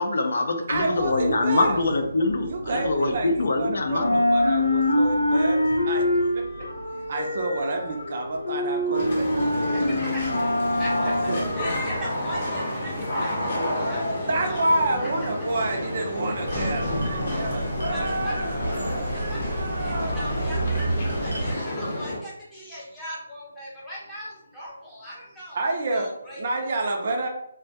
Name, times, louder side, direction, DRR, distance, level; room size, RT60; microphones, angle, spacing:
voice 1, 0.0-4.2, left 2 dB, 65° left, 5 dB, 0.4 m, -24 dB
sound 1, 0.7-3.6 3.9-12.0, left 1 dB, 90° left, 0.9 m, -25 dB
voice 2, 0.7-1.8 2.5-6.4 7.1-9.1 11.3-11.4 14.3-18.1 18.6-18.7 21.4-21.6 25.5-27.3, right 2 dB, 40° right, 2 dB, 0.4 m, -28 dB
sound 2, 8.9-22.2, left 1 dB, 40° left, 0.7 m, -30 dB
voice 3, 9.7-10.4 10.7-11.3 11.6-14.6 17.9-18.5 19.3-25.6 25.9-26.4, equal, 5° left, -8 dB, 0.6 m, -39 dB
sound 3, 16.4-21.5, right 1 dB, 85° right, 0.8 m, -29 dB
2.1 x 2.1 x 2.7 m, 0.76 s
hypercardioid pair, 170°, 0 cm